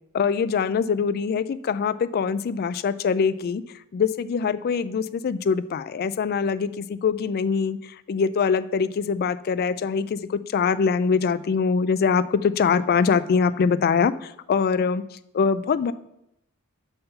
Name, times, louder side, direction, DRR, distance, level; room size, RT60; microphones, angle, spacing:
voice 1, 0.1-3.6 3.9-15.0 15.3-15.9, left 5 dB, 45° left, 15 dB, 0.3 m, -23 dB
5.7 x 5.5 x 5.6 m, 0.82 s
head